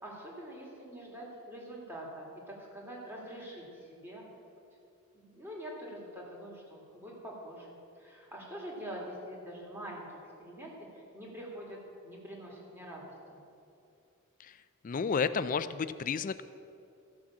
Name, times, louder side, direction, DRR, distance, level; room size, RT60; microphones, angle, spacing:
voice 1, 0.0-4.3 5.1-13.4, equal, 10° right, -3 dB, 2.5 m, -45 dB
voice 2, 14.8-16.4, left 5 dB, 35° left, 14 dB, 0.3 m, -31 dB
14.5 x 6.2 x 7.2 m, 2.6 s
head